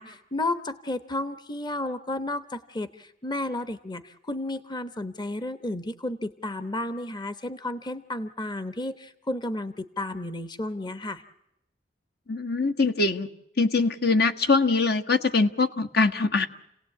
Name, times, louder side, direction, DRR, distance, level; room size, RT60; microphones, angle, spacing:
voice 1, 0.0-11.2, left 1 dB, 25° left, 12 dB, 1.0 m, -32 dB
voice 2, 12.3-13.3 13.6-16.5, left 3 dB, 60° left, 8 dB, 1.3 m, -23 dB
30.0 x 18.0 x 8.5 m, 0.86 s
head